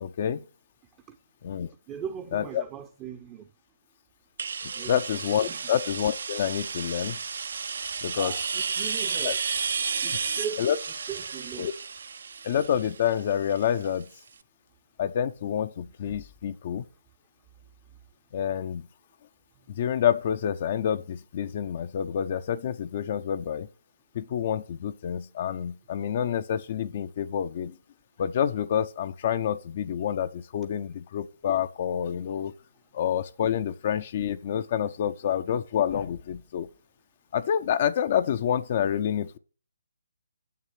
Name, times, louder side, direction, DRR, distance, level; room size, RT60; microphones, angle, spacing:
voice 1, 0.0-0.4 1.4-1.7 2.3-2.6 4.9-7.2 8.0-8.3 9.2-9.3 10.6-10.8 11.6-11.7 12.4-14.1 15.0-16.8 18.3-18.8 19.7-23.7 24.1-27.7 28.2-32.5 32.9-36.7 37.3-39.4, left 9 dB, 40° left, 0.7 m, -28 dB
voice 2, 1.9-3.5 4.7-5.0 5.5-5.7 8.1-9.4 10.0-10.7 11.1-11.7, right 8 dB, 20° right, 0.8 m, -39 dB
sound 1, 4.4-14.0, right 5 dB, 60° right, 0.8 m, -32 dB
9.5 x 7.1 x 8.4 m
figure-of-eight pair, 145°, 0 cm